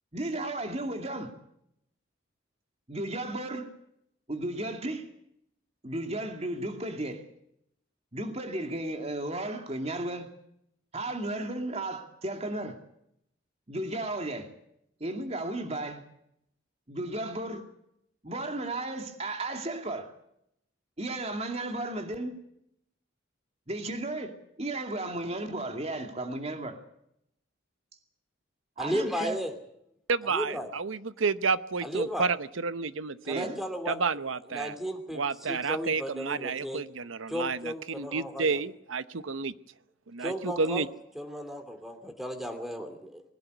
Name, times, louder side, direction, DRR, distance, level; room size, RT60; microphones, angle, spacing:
voice 1, 0.1-1.3 2.9-3.7 4.3-5.1 5.8-7.2 8.1-10.3 10.9-12.8 13.7-14.5 15.0-16.0 16.9-17.6 18.2-20.1 21.0-22.3 23.7-26.8 28.8-29.4 30.5-30.6 33.3-33.6, right 2 dB, 30° right, 2.5 m, -34 dB
voice 2, 28.8-29.5 30.3-30.7 31.8-32.3 33.2-34.0 34.5-36.8 37.3-38.6 40.2-40.9 41.1-43.2, equal, ahead, 2.7 m, -35 dB
voice 3, 30.1-33.5 33.9-34.8 35.1-39.5 40.1-40.9, right 4 dB, 85° right, 0.9 m, -30 dB
21.0 x 17.5 x 8.1 m
head